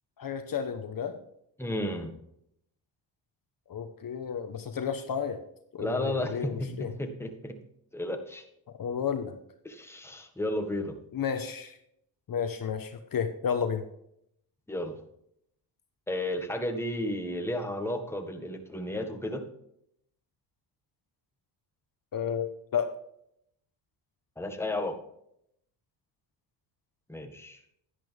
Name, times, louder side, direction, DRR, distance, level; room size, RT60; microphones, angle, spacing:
voice 1, 0.2-1.2 3.7-5.4 5.7-6.9 8.8-9.3 11.1-11.8 12.3-13.8 22.1-22.9, left 7 dB, 45° left, 8 dB, 1.1 m, -32 dB
voice 2, 1.6-2.1 5.8-6.5 7.0-7.6 7.9-8.4 9.6-11.0 14.7-15.0 16.1-19.4 24.4-25.0 27.1-27.6, left 1 dB, 5° left, 5 dB, 1.7 m, -33 dB
11.0 x 10.0 x 3.5 m, 0.74 s
cardioid pair, 85°, 46 cm